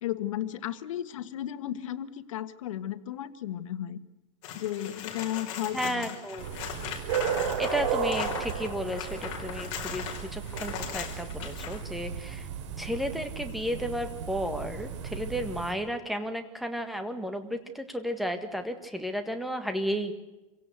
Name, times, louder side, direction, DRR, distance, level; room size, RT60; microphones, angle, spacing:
voice 1, 0.0-4.0 4.5-6.1, left 12 dB, 85° left, 12 dB, 1.6 m, -34 dB
sound 1, 4.4-11.8 14.5-14.6, left 8 dB, 50° left, 4.7 m, -39 dB
voice 2, 5.7-6.5 7.6-12.5 12.8-20.1, equal, ahead, 7 dB, 1.7 m, -33 dB
sound 2, 6.4-15.7, right 7 dB, 65° right, 4.3 m, -34 dB
27.0 x 17.0 x 8.2 m, 1.1 s
supercardioid pair, 155°, 16 cm